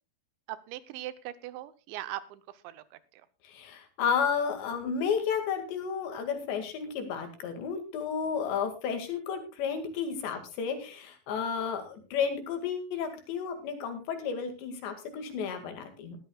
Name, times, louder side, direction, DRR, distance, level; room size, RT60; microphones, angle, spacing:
voice 1, 0.5-3.3, right 14 dB, 80° right, 14 dB, 3.1 m, -41 dB
voice 2, 3.4-16.2, left 6 dB, 75° left, 6 dB, 4.3 m, -32 dB
19.5 x 13.0 x 2.3 m, 0.29 s
omnidirectional pair, 5.2 m